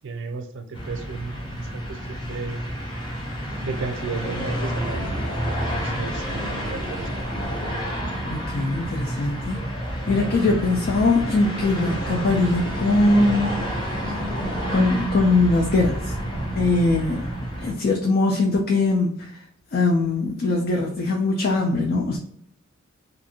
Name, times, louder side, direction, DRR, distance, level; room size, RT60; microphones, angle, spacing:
voice 1, 0.0-2.6 3.6-5.3 5.7-7.1, right 4 dB, 55° right, 7 dB, 0.4 m, -33 dB
sound 1, 0.7-17.7, right 1 dB, 20° left, 0.7 m, -29 dB
voice 2, 8.3-9.6 10.1-13.6 14.2-14.3 14.7-16.1 16.6-17.3 17.6-19.4 19.7-22.2, left 3 dB, 45° left, 1 dB, 0.4 m, -21 dB
2.5 x 2.4 x 2.8 m, 0.69 s
head